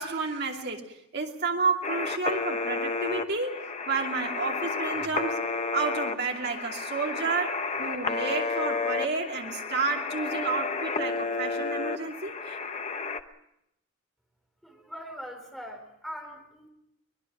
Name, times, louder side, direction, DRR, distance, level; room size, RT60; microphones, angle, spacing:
voice 1, 0.0-3.6 3.9-5.4 5.7-12.6, right 4 dB, 50° right, 1 dB, 2.7 m, -31 dB
sound 1, 1.8-13.2, left 4 dB, 35° left, 1.0 m, -31 dB
voice 2, 14.6-16.7, equal, ahead, 2 dB, 4.3 m, -41 dB
23.5 x 21.0 x 6.2 m, 0.79 s
head